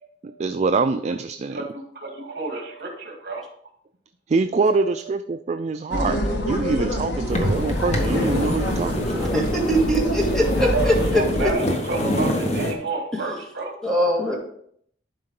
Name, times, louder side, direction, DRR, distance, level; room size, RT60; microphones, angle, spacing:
voice 1, 0.4-1.6 4.3-6.2 6.5-9.2, right 4 dB, 40° right, 9 dB, 0.3 m, -24 dB
voice 2, 1.5-3.4 4.7-4.9 7.5-7.6 10.0-10.1 10.7-13.7, right 3 dB, 60° right, 2 dB, 1.9 m, -30 dB
sound 1, 5.9-11.5, equal, 70° left, 1.4 m, -26 dB
sound 2, 7.3-12.7, equal, 40° left, 1.2 m, -26 dB
voice 3, 9.2-11.5 13.8-14.4, equal, 5° left, -1 dB, 1.7 m, -22 dB
11.5 x 4.6 x 3.7 m, 0.66 s
head